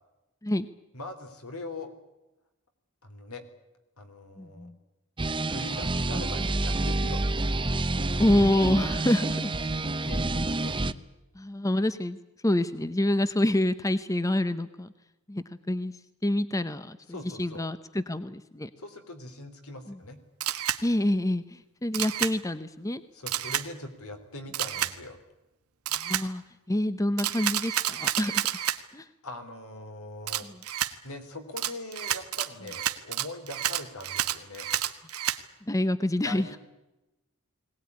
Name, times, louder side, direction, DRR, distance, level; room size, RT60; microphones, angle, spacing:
voice 1, 0.9-1.9 3.0-3.4 4.0-4.7 5.5-7.4 9.7-9.8 10.0-10.8 17.1-17.7 18.8-20.2 23.1-25.2 29.2-30.5 31.0-34.7 36.2-36.6, left 2 dB, 75° left, 7 dB, 3.7 m, -41 dB
voice 2, 4.4-4.8 8.2-9.5 11.4-14.9 15.3-15.9 16.2-18.7 19.9-20.0 20.8-23.0 25.9-28.5 28.9-29.1 30.4-30.6 35.7-36.5, left 1 dB, 15° left, 12 dB, 0.8 m, -27 dB
sound 1, 5.2-10.9, right 2 dB, 25° right, 0.8 m, -28 dB
Camera, 20.4-20.8 21.9-22.3 23.3-23.7 24.5-24.9 25.9-26.3 27.2-28.8 30.3-30.9 31.6-35.4, right 11 dB, 85° right, 1.4 m, -29 dB
22.0 x 18.5 x 9.7 m, 0.99 s
head